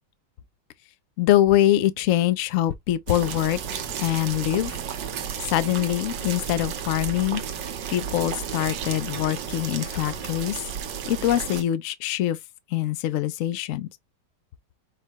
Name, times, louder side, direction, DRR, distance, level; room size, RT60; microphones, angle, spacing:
voice 1, 1.2-3.6 4.0-4.7 5.5-7.4 7.9-10.6 11.0-12.4 12.7-13.9, left 13 dB, 70° left, 0.7 m, -23 dB
sound 1, 3.1-11.6, right 8 dB, 85° right, 1.5 m, -33 dB
4.7 x 2.3 x 4.6 m
omnidirectional pair, 1.9 m